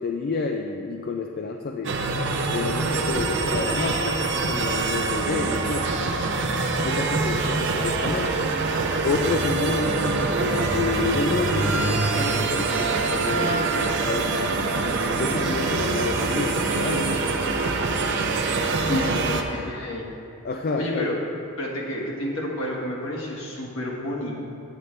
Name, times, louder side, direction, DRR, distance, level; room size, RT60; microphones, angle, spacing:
voice 1, 0.0-2.0 2.5-6.1 6.8-8.4 9.0-14.8 15.1-17.4 18.9-19.7 20.4-21.2, left 3 dB, 45° left, 3 dB, 0.4 m, -29 dB
sound 1, 1.8-19.4, right 3 dB, 55° right, 0.6 m, -24 dB
voice 2, 19.2-20.1 20.8-21.1 21.6-24.3, left 1 dB, 65° left, -3 dB, 1.4 m, -31 dB
9.3 x 8.1 x 3.2 m, 2.6 s
head